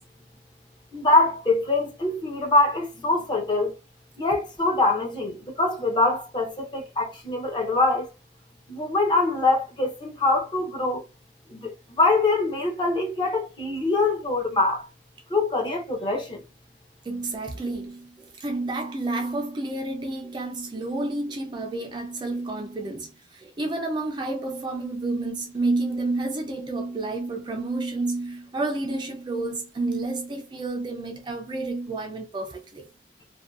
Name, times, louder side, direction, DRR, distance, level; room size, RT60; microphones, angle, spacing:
voice 1, 0.9-3.7 4.2-8.1 8.7-11.0 11.5-14.9 15.3-16.4, left 2 dB, 25° left, 0.7 m, -24 dB
voice 2, 17.0-32.9, right 2 dB, 25° right, 0.4 m, -30 dB
2.6 x 2.2 x 2.3 m
head